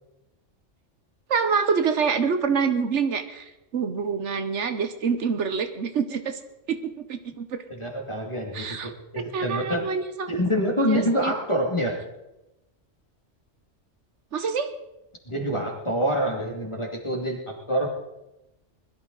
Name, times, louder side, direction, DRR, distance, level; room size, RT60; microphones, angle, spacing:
voice 1, 1.3-3.4 3.7-6.4 6.7-7.6 8.5-8.9 9.3-10.3 10.9-11.3 14.3-14.7, right 5 dB, 75° right, 9 dB, 1.3 m, -26 dB
voice 2, 7.7-9.9 10.3-12.0 15.3-17.9, equal, 25° left, 0 dB, 2.5 m, -26 dB
21.0 x 12.5 x 4.0 m, 0.94 s
omnidirectional pair, 1.2 m